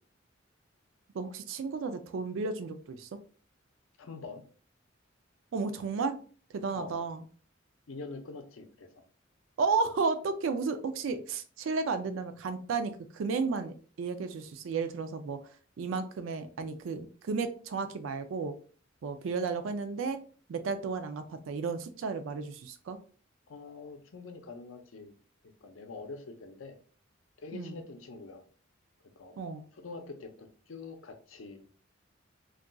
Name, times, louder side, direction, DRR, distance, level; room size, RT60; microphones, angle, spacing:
voice 1, 1.1-3.1 5.5-6.1 6.5-7.2 9.6-15.4 15.8-18.5 19.0-20.2 20.5-23.0 27.5-27.7 29.4-29.6, right 4 dB, 75° right, 9 dB, 0.4 m, -33 dB
voice 2, 4.0-4.5 6.7-7.0 7.9-9.0 23.5-25.1 25.4-26.8 27.4-28.4 29.2-29.4 29.7-31.6, left 3 dB, 90° left, 6 dB, 0.6 m, -45 dB
2.4 x 2.2 x 3.7 m, 0.41 s
head